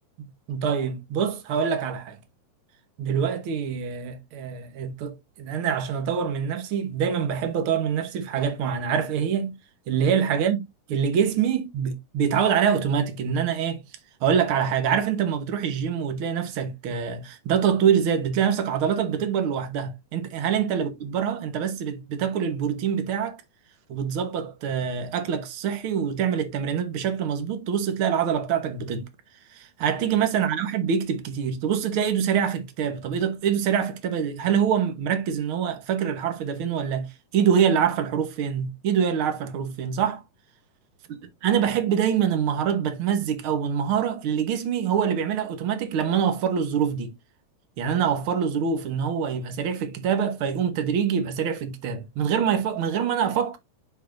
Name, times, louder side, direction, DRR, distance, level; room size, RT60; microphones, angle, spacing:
voice 1, 0.5-2.2 3.0-9.6 9.9-10.6 10.9-13.8 14.2-23.4 23.9-29.0 29.5-40.2 41.4-47.1 47.8-53.6, right 7 dB, 60° right, 1.4 m, -25 dB
10.5 x 4.6 x 2.6 m
omnidirectional pair, 3.9 m